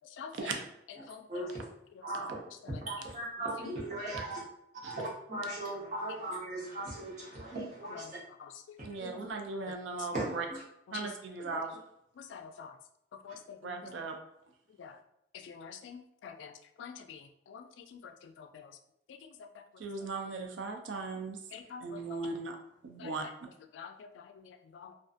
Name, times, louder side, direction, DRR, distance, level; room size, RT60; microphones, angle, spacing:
voice 1, 0.3-0.6 4.1-4.2 4.8-5.0 8.8-10.5 10.9-11.8 13.6-14.2 19.8-21.4 21.8-22.6 22.8-23.3, right 3 dB, 80° right, 3 dB, 0.4 m, -38 dB
voice 2, 2.0-2.4 2.8-4.4 4.8-8.2 9.0-9.1 10.1-10.6, right 2 dB, 40° right, -6 dB, 0.9 m, -38 dB
voice 3, 12.3-12.7 13.3-13.4 14.8-14.9 15.5-16.5 16.8-17.2 17.5-17.6 21.5-21.8 23.0-23.1 23.7-23.9 24.7-24.9, left 6 dB, 80° left, 6 dB, 0.3 m, -45 dB
2.5 x 2.3 x 2.4 m, 0.79 s
head